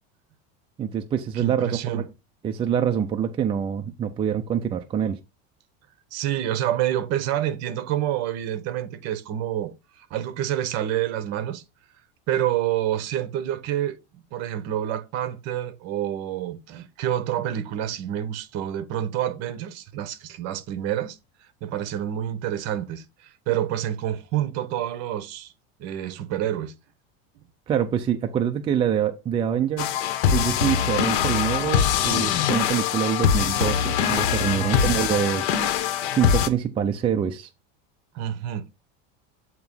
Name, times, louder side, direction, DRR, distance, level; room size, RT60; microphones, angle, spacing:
voice 1, 0.8-2.1 2.4-5.2 27.7-30.0 30.3-35.7 36.1-37.5, right 8 dB, 15° right, 0.3 m, -25 dB
voice 2, 1.3-2.0 6.1-11.6 12.3-21.2 21.6-25.5 25.8-26.7 34.5-34.9 38.1-38.6, right 11 dB, 50° right, 1.0 m, -28 dB
sound 1, 29.8-36.5, left 9 dB, 75° left, 1.0 m, -23 dB
7.9 x 3.0 x 5.4 m
supercardioid pair, 145°, 33 cm